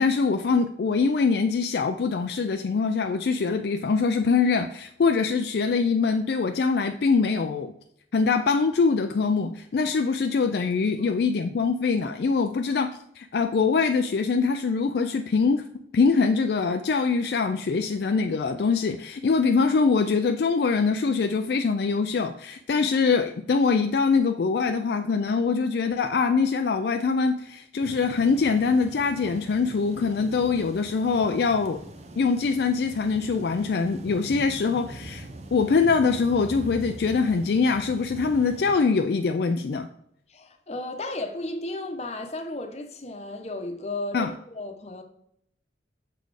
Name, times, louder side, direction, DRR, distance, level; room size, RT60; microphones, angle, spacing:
voice 1, 0.0-7.7 8.1-15.7 15.9-31.8 32.2-35.3 35.5-39.9 44.1-44.3, left 4 dB, 60° left, 0.4 m, -23 dB
sound 1, 27.8-38.8, right 1 dB, 35° right, 0.6 m, -42 dB
voice 2, 40.3-45.0, left 2 dB, 35° left, 0.8 m, -34 dB
6.6 x 4.1 x 4.8 m
head